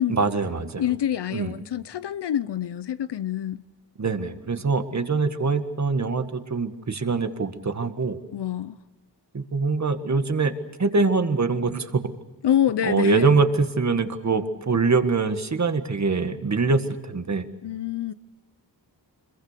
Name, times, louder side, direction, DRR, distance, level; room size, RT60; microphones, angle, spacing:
voice 1, 0.1-0.8 1.3-1.5 4.0-8.2 9.3-10.5 10.8-12.0 12.8-17.4, right 4 dB, 40° right, 1.7 m, -23 dB
voice 2, 0.8-3.6 8.3-8.8 12.4-13.4 17.6-18.1, left 10 dB, 70° left, 0.7 m, -26 dB
25.5 x 22.5 x 6.7 m
wide cardioid pair, 100°, 42 cm